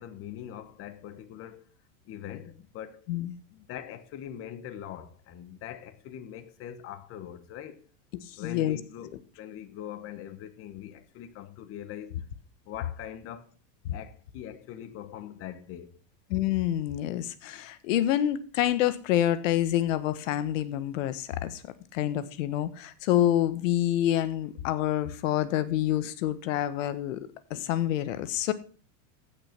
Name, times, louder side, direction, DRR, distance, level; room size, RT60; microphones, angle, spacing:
voice 1, 0.0-1.7 2.0-3.1 3.5-7.9 8.4-12.1 12.6-13.5 13.9-16.0, left 10 dB, 35° left, 1.3 m, -42 dB
voice 2, 8.2-8.8 13.8-14.0 16.3-21.6 21.9-28.5, left 12 dB, 80° left, 1.5 m, -27 dB
15.5 x 6.8 x 6.0 m
supercardioid pair, 160°, 38 cm